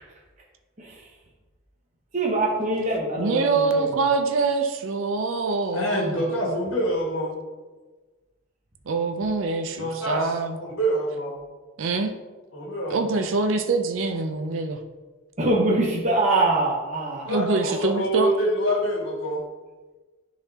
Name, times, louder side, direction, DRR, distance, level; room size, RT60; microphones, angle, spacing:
voice 1, 2.1-3.9 15.4-17.3 17.6-17.8, right 2 dB, 35° right, -4 dB, 0.9 m, -23 dB
voice 2, 3.2-6.2 8.9-10.6 11.8-12.1 12.9-14.8 17.3-18.3, right 4 dB, 65° right, 6 dB, 0.5 m, -25 dB
voice 3, 5.7-7.3 9.7-10.3 10.6-11.4 12.5-13.2 17.3-19.4, right 1 dB, 65° left, -3 dB, 1.7 m, -26 dB
9.7 x 4.0 x 2.8 m, 1.3 s
head